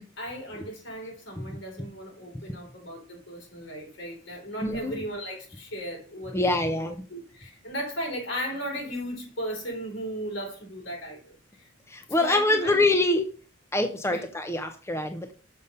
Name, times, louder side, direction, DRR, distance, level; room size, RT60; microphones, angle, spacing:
voice 1, 0.2-11.7 12.1-12.8 14.0-14.2, equal, 75° left, 4.2 m, -36 dB
voice 2, 4.6-5.0 6.3-7.0 11.9-13.3 13.7-15.3, left 2 dB, 15° left, 0.6 m, -25 dB
6.8 x 5.4 x 5.3 m
head